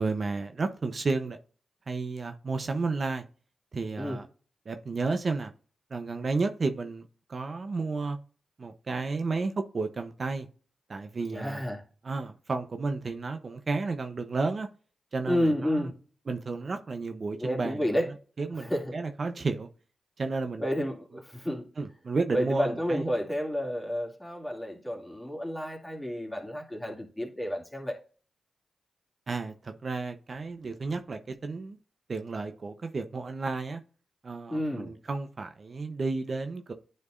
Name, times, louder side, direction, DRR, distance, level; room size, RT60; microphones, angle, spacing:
voice 1, 0.0-1.4 1.9-3.2 3.7-4.3 4.7-5.5 5.9-7.0 7.3-8.2 8.6-10.5 10.9-11.6 12.0-14.7 15.1-15.9 16.3-18.0 18.4-19.7 20.2-20.6 21.8-23.1 29.3-31.8 32.1-33.8 34.2-36.7, right 3 dB, 55° right, 0.7 m, -32 dB
voice 2, 11.3-11.8 15.2-16.0 17.4-18.1 18.6-19.0 20.6-21.7 22.3-28.0 34.5-34.9, equal, 10° left, 2.5 m, -30 dB
9.7 x 4.4 x 2.5 m
cardioid pair, 45°, 0 cm